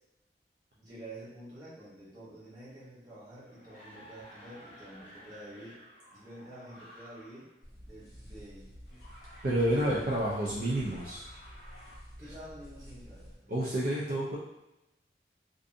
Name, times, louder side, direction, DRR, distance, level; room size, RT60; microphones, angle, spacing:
voice 1, 0.8-5.8 6.1-7.5 7.8-8.7 9.6-10.3 12.2-13.6, right 1 dB, 20° right, -10 dB, 1.0 m, -49 dB
sound 1, 3.3-7.5 8.9-12.0, equal, 60° left, 1.0 m, -53 dB
sound 2, 7.6-13.4, equal, 20° left, 0.7 m, -50 dB
voice 2, 9.4-11.3 13.5-14.4, right 1 dB, 50° right, -6 dB, 0.4 m, -29 dB
2.5 x 2.5 x 2.5 m, 0.94 s
head